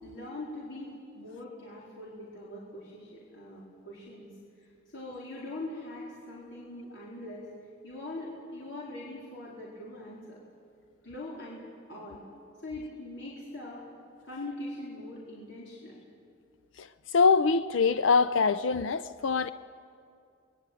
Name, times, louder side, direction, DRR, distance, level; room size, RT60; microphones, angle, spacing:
voice 1, 0.0-4.3 4.6-7.5 7.8-10.4 11.0-11.6 11.9-12.2 12.6-13.9 14.2-16.0, left 1 dB, 65° left, 4.3 m, -42 dB
voice 2, 16.8-19.5, left 4 dB, 80° left, 0.5 m, -24 dB
26.0 x 20.0 x 9.2 m
head